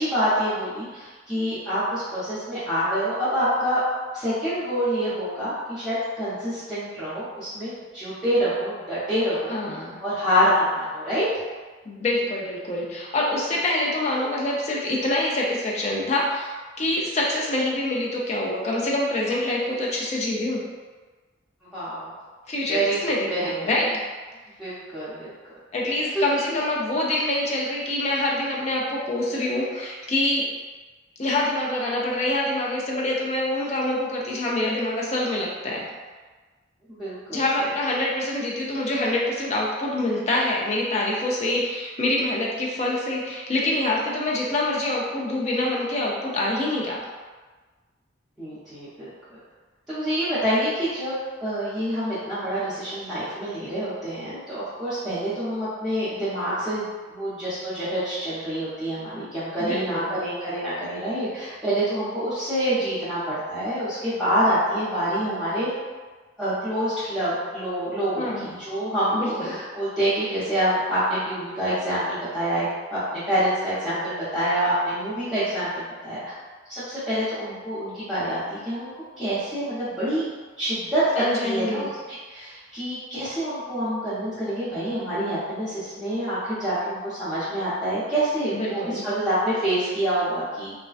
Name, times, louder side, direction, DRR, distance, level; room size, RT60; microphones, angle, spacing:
voice 1, 0.0-3.8 4.1-9.6 10.0-11.3 21.7-22.1 22.7-23.0 23.3-23.5 24.6-25.3 26.1-26.6 36.9-37.4 48.4-49.4 49.9-56.9 57.1-65.7 66.4-76.2 76.7-80.3 80.6-90.7, equal, ahead, -17 dB, 0.7 m, -26 dB
voice 2, 9.5-10.0 11.9-20.6 22.5-23.9 25.7-30.5 31.2-35.9 37.3-47.0 59.6-60.1 68.2-68.6 69.1-69.6 81.2-81.9 88.5-89.0, left 1 dB, 35° left, -3 dB, 0.4 m, -26 dB
2.3 x 2.2 x 2.4 m, 1.3 s
head